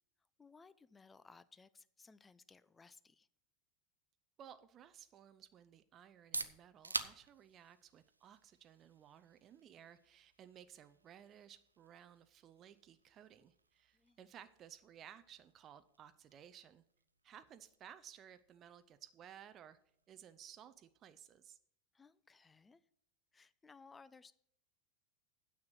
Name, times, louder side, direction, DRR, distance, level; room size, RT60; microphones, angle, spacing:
voice 1, 0.4-3.3 14.0-14.2 21.9-22.8 23.3-24.3, left 4 dB, 15° left, 0.6 m, -61 dB
voice 2, 4.4-16.8 17.2-19.8 20.1-21.6, right 9 dB, 35° right, 0.6 m, -58 dB
sound 1, 6.0-21.7, right 3 dB, 90° right, 0.6 m, -51 dB
9.6 x 7.3 x 6.4 m
figure-of-eight pair, 85°, 0 cm